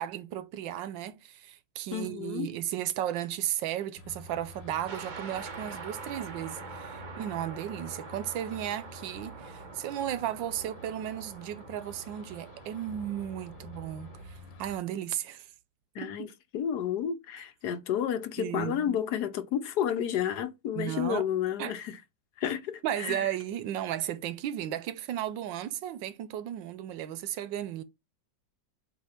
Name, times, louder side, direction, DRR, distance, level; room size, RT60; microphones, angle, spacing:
voice 1, 0.0-15.5 16.0-16.1 18.4-19.0 20.7-21.2 21.6-21.7 22.8-27.8, right 11 dB, 85° right, 1.4 m, -35 dB
voice 2, 1.9-2.5 15.9-22.0 22.4-23.3, left 9 dB, 70° left, 1.2 m, -31 dB
sound 1, 4.0-14.8, left 2 dB, 90° left, 1.8 m, -49 dB
sound 2, 4.9-14.2, right 5 dB, 45° right, 0.6 m, -45 dB
8.0 x 2.8 x 4.3 m
omnidirectional pair, 2.0 m